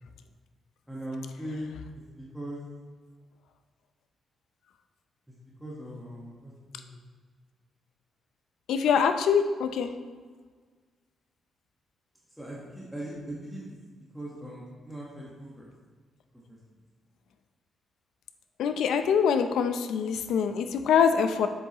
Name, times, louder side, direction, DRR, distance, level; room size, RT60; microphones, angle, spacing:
voice 1, 0.9-1.7 2.2-2.6 5.6-7.0 12.4-13.7 14.1-15.7 16.5-16.6, right 1 dB, ahead, -6 dB, 1.3 m, -39 dB
voice 2, 8.7-9.9 18.6-21.5, left 7 dB, 85° left, 8 dB, 0.5 m, -24 dB
8.0 x 7.6 x 3.0 m, 1.5 s
cardioid pair, 120°, 0 cm